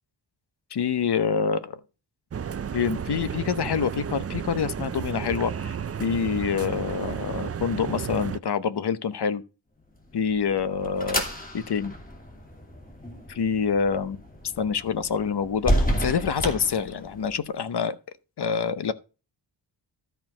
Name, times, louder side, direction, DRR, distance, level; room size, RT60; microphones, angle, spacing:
voice 1, 0.7-1.8 2.7-9.4 10.1-11.9 13.3-14.2 14.6-18.0 18.4-18.9, left 6 dB, 60° left, 0.9 m, -26 dB
sound 1, 2.3-8.4, right 7 dB, 35° right, 0.4 m, -32 dB
sound 2, 10.1-17.4, equal, 20° left, 2.7 m, -31 dB
13.0 x 4.6 x 6.0 m
wide cardioid pair, 150°, 45 cm